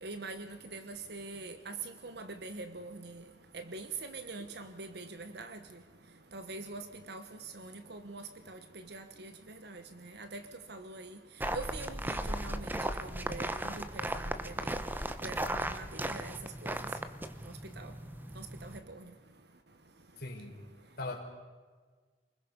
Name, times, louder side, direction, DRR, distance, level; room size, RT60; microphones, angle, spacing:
voice 1, 0.0-3.2 3.5-5.6 6.3-7.2 7.5-8.6 8.9-9.3 9.6-10.4 10.7-11.2 11.5-14.8 15.2-16.3 16.6-16.8 17.8-17.9 18.4-18.7, right 3 dB, 65° right, 9 dB, 1.3 m, -44 dB
sound 1, 11.4-18.8, right 1 dB, 10° right, 1.0 m, -37 dB
voice 2, 20.2-20.6 21.0-21.2, left 2 dB, 60° left, 1 dB, 4.5 m, -39 dB
28.5 x 21.0 x 5.4 m, 1.5 s
head